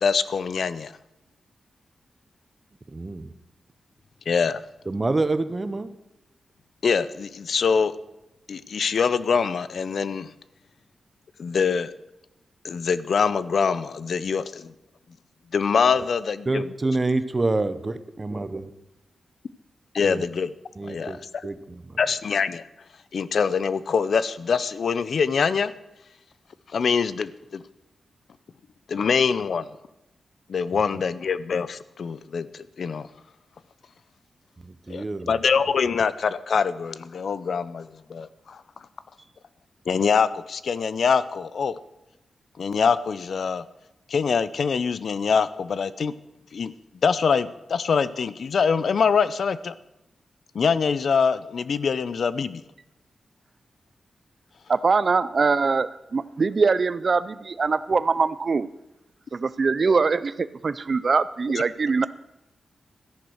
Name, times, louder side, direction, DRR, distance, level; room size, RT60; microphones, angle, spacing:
voice 1, 0.0-1.0 4.3-4.6 6.8-7.9 8.5-10.3 11.4-11.9 12.6-14.7 15.5-16.7 19.9-20.5 20.8-21.5 22.0-22.7 23.1-25.7 26.7-27.6 28.9-29.7 30.5-33.1 34.9-38.6 39.9-41.8 42.6-43.7 44.1-46.1 46.5-46.7 47.0-49.7 50.5-52.6, left 6 dB, 60° left, 16 dB, 0.6 m, -24 dB
voice 2, 2.9-3.3 4.9-5.9 16.5-18.7 20.0-20.2 20.8-21.5 21.9-22.0 34.6-35.3, right 2 dB, 25° right, 12 dB, 0.8 m, -27 dB
voice 3, 54.7-58.7 59.3-62.1, right 4 dB, 40° right, 16 dB, 0.4 m, -22 dB
14.0 x 10.5 x 6.4 m, 0.91 s
wide cardioid pair, 150°, 0 cm